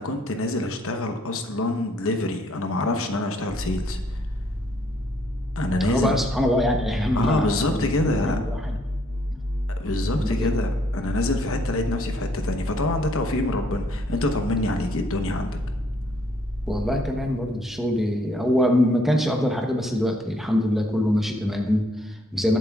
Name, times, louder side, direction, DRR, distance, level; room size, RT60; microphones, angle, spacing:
voice 1, 0.0-4.0 5.6-6.1 7.1-8.4 9.8-15.6, left 2 dB, 65° left, 5 dB, 1.0 m, -26 dB
sound 1, 3.5-17.2, equal, 85° right, 3.0 m, -30 dB
voice 2, 5.8-7.9 8.2-8.8 9.3-9.4 10.0-10.5 16.7-22.6, left 1 dB, ahead, 1 dB, 1.0 m, -24 dB
20.5 x 7.4 x 2.4 m, 1.2 s
head